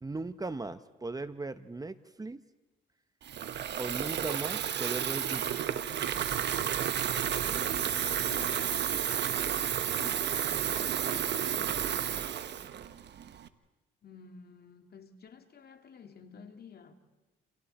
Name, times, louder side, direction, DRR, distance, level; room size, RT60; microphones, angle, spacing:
voice 1, 0.0-2.4 3.8-5.6, right 3 dB, 20° right, 0.9 m, -38 dB
Water tap faucet / Fill (with liquid), 3.2-13.5, right 9 dB, 60° right, 1.2 m, -31 dB
voice 2, 7.4-9.1 9.9-12.2 14.0-17.0, left 6 dB, 50° left, 2.3 m, -51 dB
30.0 x 28.5 x 4.3 m
cardioid pair, 90°, 20 cm